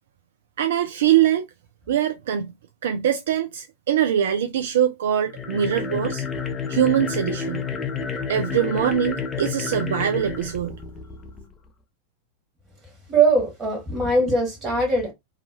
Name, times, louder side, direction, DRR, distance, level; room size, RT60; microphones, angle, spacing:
voice 1, 0.6-1.5 1.9-2.5 2.8-6.2 6.7-7.6 8.3-10.8, right 10 dB, 60° right, 0.3 m, -22 dB
sound 1, 5.2-11.5, left 6 dB, 20° left, 0.5 m, -30 dB
voice 2, 13.1-15.1, right 3 dB, 20° right, 1.5 m, -21 dB
2.8 x 2.3 x 2.6 m
figure-of-eight pair, 90°, 0 cm